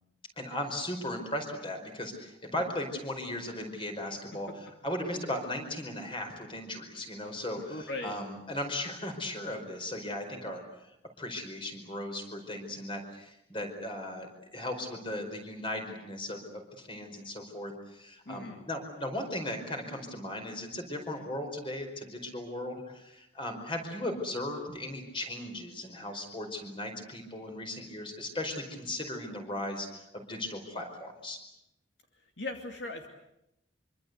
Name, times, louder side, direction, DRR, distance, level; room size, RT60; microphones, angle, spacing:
voice 1, 0.4-10.6 11.2-31.4, left 1 dB, 25° left, 5 dB, 4.9 m, -37 dB
voice 2, 7.7-8.2 18.3-18.6 32.4-33.1, left 2 dB, 65° left, 4 dB, 2.5 m, -38 dB
25.5 x 25.0 x 8.1 m, 0.83 s
head